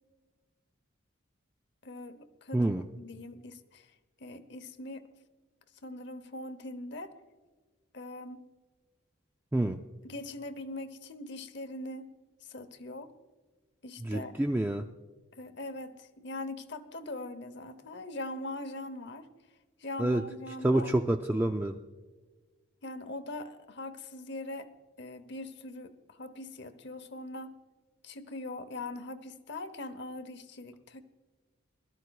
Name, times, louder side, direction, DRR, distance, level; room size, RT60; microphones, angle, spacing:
voice 1, 1.8-3.9 4.2-5.1 5.8-7.1 7.9-8.5 10.0-12.1 12.4-13.1 13.8-14.3 15.3-19.3 19.8-20.9 22.8-24.7 25.0-27.6 28.0-31.0, left 2 dB, 55° left, 11 dB, 0.9 m, -41 dB
voice 2, 2.5-2.8 9.5-9.8 14.0-14.9 20.0-20.2 20.6-21.8, right 1 dB, 10° right, 4 dB, 0.3 m, -27 dB
21.5 x 13.0 x 2.3 m, 1.3 s
head